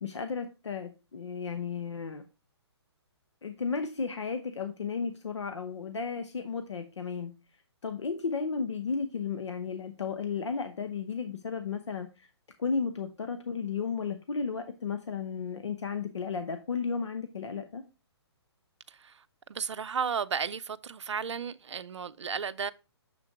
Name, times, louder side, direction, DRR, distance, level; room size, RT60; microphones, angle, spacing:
voice 1, 0.0-2.2 3.4-7.3 7.8-12.3 12.6-17.8, left 5 dB, 85° left, 0.8 m, -34 dB
voice 2, 18.9-19.2 19.5-22.7, right 6 dB, 90° right, 0.4 m, -34 dB
6.8 x 3.6 x 4.5 m
hypercardioid pair, 140°, 14 cm